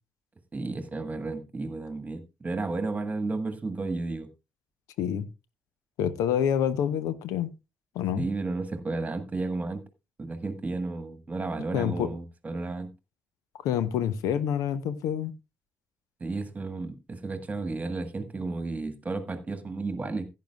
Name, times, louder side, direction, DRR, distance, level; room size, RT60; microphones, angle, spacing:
voice 1, 0.5-4.3 8.2-9.8 10.2-12.9 16.2-20.3, right 3 dB, 25° right, 1.6 m, -32 dB
voice 2, 6.0-7.5 7.9-8.2 11.7-12.1 13.6-15.3, left 9 dB, 60° left, 0.7 m, -27 dB
16.0 x 9.3 x 2.3 m
figure-of-eight pair, 45°, 6 cm